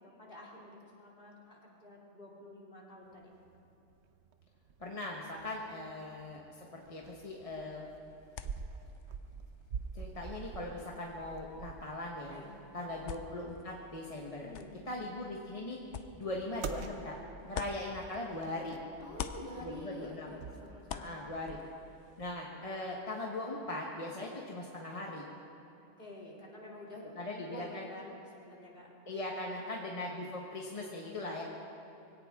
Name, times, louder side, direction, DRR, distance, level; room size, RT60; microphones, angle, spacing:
voice 1, 0.0-3.3 5.7-5.9 12.3-13.0 14.4-14.7 17.5-17.7 19.0-21.3 26.0-29.9 31.3-31.4, left 1 dB, 45° left, -4 dB, 3.2 m, -49 dB
sound 1, 3.1-22.2, right 5 dB, 65° right, 1.1 m, -48 dB
voice 2, 4.8-7.9 9.9-12.4 12.7-14.5 14.9-15.8 16.1-17.2 17.4-18.8 19.6-20.3 20.9-21.6 22.2-25.2 27.2-27.8 29.1-31.4, left 2 dB, 30° left, -2 dB, 1.3 m, -40 dB
sound 2, 7.5-18.6 18.9-22.3, left 7 dB, 70° left, 1.0 m, -49 dB
23.0 x 17.0 x 3.6 m, 2.8 s
omnidirectional pair, 1.3 m